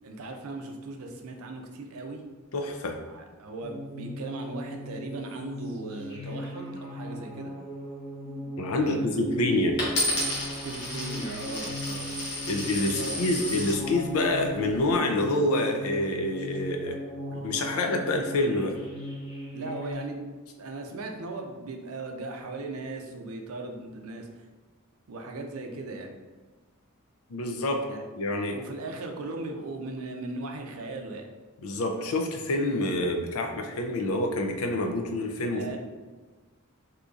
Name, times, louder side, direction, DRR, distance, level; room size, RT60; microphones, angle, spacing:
voice 1, 0.0-2.2 3.1-7.5 8.8-9.6 10.6-12.1 13.0-13.3 19.5-20.2 20.6-24.3 25.1-26.2 27.9-28.0 28.5-31.3 35.5-35.8, right 2 dB, 75° right, 3 dB, 0.5 m, -38 dB
voice 2, 2.5-3.0 8.6-9.8 12.5-17.0 17.3-18.7 27.3-27.8 28.2-28.6 31.6-35.8, left 2 dB, 70° left, 4 dB, 0.5 m, -27 dB
sound 1, 3.6-19.9, equal, 30° left, 1.1 m, -38 dB
Coin (dropping), 9.8-13.8 14.5-14.9, left 1 dB, 55° left, 1.1 m, -32 dB
3.8 x 2.8 x 2.4 m, 1.3 s
head